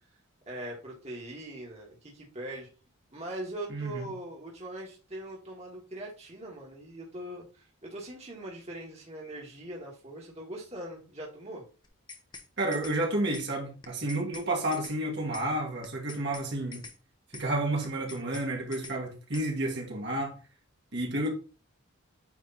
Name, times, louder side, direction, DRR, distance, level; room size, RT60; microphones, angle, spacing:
voice 1, 0.5-2.7 3.1-11.6, right 1 dB, 30° right, 1.8 m, -41 dB
voice 2, 3.7-4.1 12.6-16.8 17.3-20.3 20.9-21.3, right 1 dB, 55° right, 2.0 m, -31 dB
sound 1, 11.8-12.5 12.7-13.0 13.3-13.5 13.8-14.5 14.7-15.0 15.3-15.5 15.8-16.5 16.7-17.0 17.3-17.5 17.8-18.5 18.7-19.0 19.3-19.5, left 4 dB, 20° left, 1.0 m, -45 dB
9.3 x 3.5 x 4.1 m
head